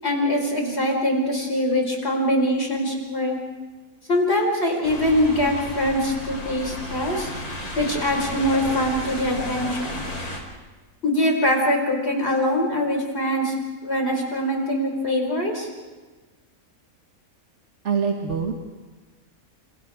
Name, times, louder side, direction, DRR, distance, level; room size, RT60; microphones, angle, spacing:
voice 1, 0.0-3.4 4.1-7.3 7.8-10.0 11.0-13.5 13.8-15.7, left 1 dB, 45° left, 1 dB, 5.3 m, -23 dB
sound 1, 4.8-10.4, left 1 dB, 75° left, 4.5 m, -33 dB
voice 2, 17.8-18.5, right 6 dB, 50° right, 1 dB, 1.9 m, -24 dB
29.0 x 28.5 x 3.7 m, 1.3 s
omnidirectional pair, 1.6 m